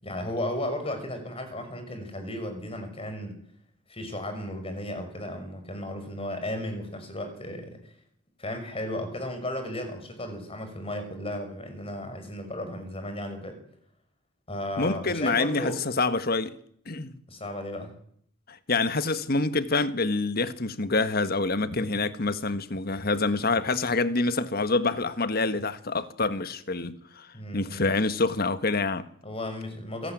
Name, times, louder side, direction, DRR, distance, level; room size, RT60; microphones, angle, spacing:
voice 1, 0.0-3.4 3.9-7.9 8.4-13.6 14.5-15.8 17.3-17.9 27.3-27.9 29.2-30.1, left 1 dB, 30° left, 6.0 m, -34 dB
voice 2, 14.8-16.5 16.9-17.1 18.5-27.3 27.5-29.1, left 3 dB, 50° left, 1.6 m, -26 dB
27.5 x 18.0 x 9.3 m
head